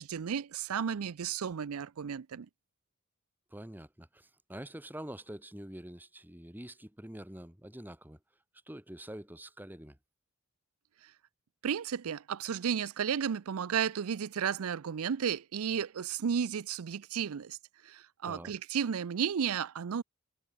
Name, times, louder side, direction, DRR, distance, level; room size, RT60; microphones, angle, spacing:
voice 1, 0.0-2.5 11.0-11.1 11.6-17.6 17.8-20.0, right 7 dB, 85° right, 0.5 m, -33 dB
voice 2, 3.5-8.2 8.7-10.0 18.2-18.5, right 1 dB, 10° right, 1.5 m, -46 dB
head